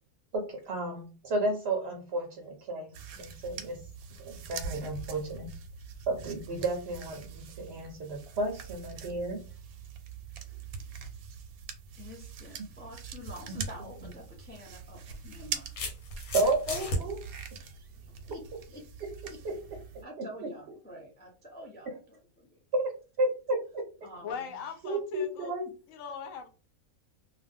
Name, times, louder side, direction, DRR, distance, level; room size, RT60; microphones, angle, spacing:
voice 1, 0.3-3.8 4.2-5.5 6.1-9.4 12.6-12.7 16.3-17.2 19.4-19.6 20.4-20.5 21.9-22.0 22.7-23.8 24.8-25.6, right 2 dB, 60° right, 3 dB, 0.7 m, -32 dB
sound 1, 2.9-20.0, right 6 dB, 85° right, 1.0 m, -43 dB
voice 2, 11.9-15.8 17.5-18.4 18.7-19.4 20.0-22.6 24.0-24.7, equal, 10° left, 0 dB, 0.5 m, -48 dB
sound 2, 13.8-14.0 15.1-17.0, left 1 dB, 90° left, 1.3 m, -34 dB
voice 3, 24.2-25.5 25.9-26.5, left 6 dB, 70° left, 6 dB, 1.0 m, -40 dB
2.4 x 2.2 x 3.4 m, 0.35 s
omnidirectional pair, 1.5 m